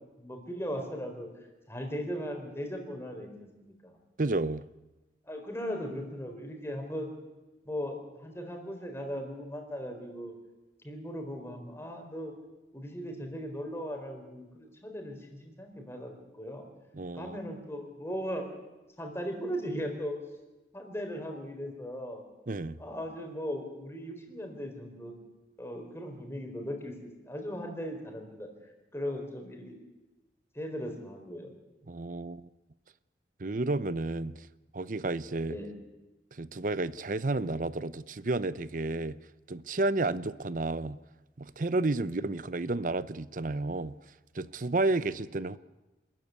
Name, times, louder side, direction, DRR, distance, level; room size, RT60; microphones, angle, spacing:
voice 1, 0.2-4.0 5.2-7.1 7.6-10.3 10.8-12.3 12.7-16.7 17.1-18.5 19.0-20.1 20.7-22.2 22.8-25.1 25.6-29.7 30.5-31.5 35.4-35.8 42.1-42.2, equal, 15° left, 4.4 m, -38 dB
voice 2, 4.2-4.6 16.9-17.4 22.5-22.8 31.9-32.5 33.4-34.5 34.7-35.6 36.3-39.2 39.5-41.0 41.4-44.0 44.3-45.6, right 2 dB, 50° right, 0.7 m, -31 dB
27.5 x 14.0 x 9.6 m
head